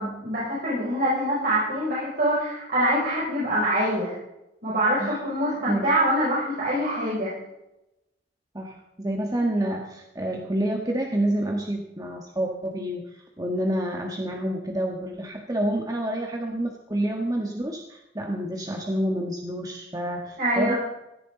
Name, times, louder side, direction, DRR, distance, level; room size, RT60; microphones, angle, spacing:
voice 1, 0.0-4.1 4.6-7.3 20.4-20.8, right 1 dB, 55° right, -8 dB, 6.3 m, -24 dB
voice 2, 8.5-20.7, right 1 dB, 20° right, 1 dB, 1.5 m, -28 dB
17.5 x 13.5 x 3.9 m, 0.89 s
head